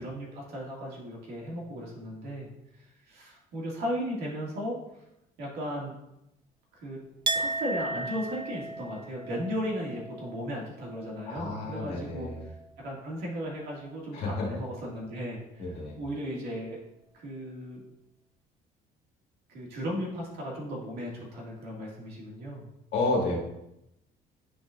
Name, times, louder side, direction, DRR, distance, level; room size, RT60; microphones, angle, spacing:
voice 1, 0.0-2.5 2.7-4.8 5.4-5.9 6.7-7.0 7.3-16.8 17.1-17.8 19.5-22.6, equal, 70° right, -3 dB, 2.0 m, -36 dB
Chink clink, 7.3-12.8 13.1-13.9, right 2 dB, 30° right, 0.4 m, -36 dB
voice 2, 11.3-12.5 14.1-14.5 15.6-16.0 22.9-23.4, left 2 dB, 85° left, -2 dB, 1.7 m, -30 dB
10.5 x 3.8 x 2.5 m, 0.86 s
cardioid pair, 110°, 17 cm